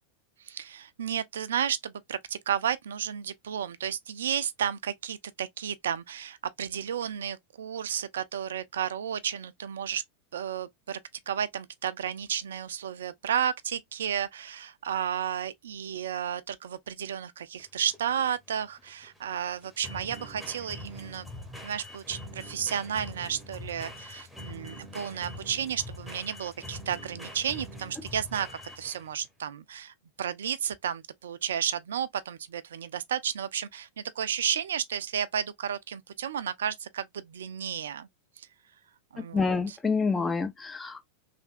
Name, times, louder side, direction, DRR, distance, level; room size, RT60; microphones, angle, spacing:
voice 1, 0.4-10.0 10.3-11.0 11.3-21.3 21.6-28.5 28.8-38.1 38.4-38.5 39.1-39.8, right 9 dB, 65° right, 0.3 m, -32 dB
sound 1, 17.6-29.2, left 1 dB, ahead, 0.9 m, -44 dB
voice 2, 39.3-41.0, left 4 dB, 15° left, 0.4 m, -27 dB
3.3 x 2.6 x 2.4 m
figure-of-eight pair, 90°, 0 cm